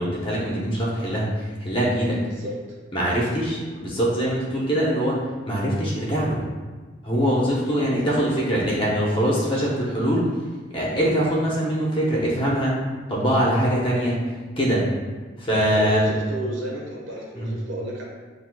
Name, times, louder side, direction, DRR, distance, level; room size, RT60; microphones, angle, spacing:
voice 1, 0.0-2.2 2.9-5.2 5.5-6.4 7.0-10.3 10.7-12.7 13.1-14.2 14.6-14.8 15.4-16.0 17.4-17.5, equal, 25° left, -5 dB, 0.9 m, -23 dB
voice 2, 15.7-18.0, right 1 dB, 85° right, -3 dB, 1.1 m, -31 dB
7.4 x 2.7 x 2.2 m, 1.4 s
head